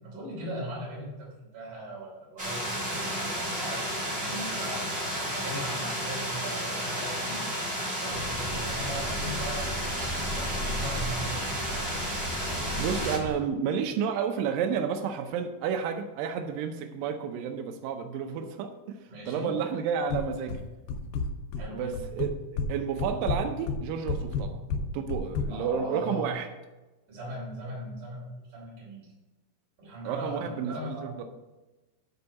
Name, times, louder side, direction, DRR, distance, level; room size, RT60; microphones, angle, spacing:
voice 1, 0.0-3.9 4.2-4.9 5.3-7.5 7.7-11.5 19.1-19.5 21.6-22.0 25.5-26.3 27.1-29.1 29.8-31.2, right 1 dB, 50° right, -4 dB, 4.5 m, -39 dB
sound 1, 2.4-13.2, equal, 20° right, 1.6 m, -32 dB
sound 2, 8.1-13.3, equal, 70° left, 4.0 m, -36 dB
voice 2, 12.8-19.0 19.3-20.6 21.7-24.6 24.9-26.5 30.0-31.2, right 7 dB, 85° right, 6 dB, 2.0 m, -31 dB
sound 3, 20.1-20.6 20.9-21.7 21.9-22.7 23.0-25.5, left 4 dB, 85° left, 1.9 m, -30 dB
9.8 x 4.5 x 7.0 m, 1.1 s
omnidirectional pair, 4.8 m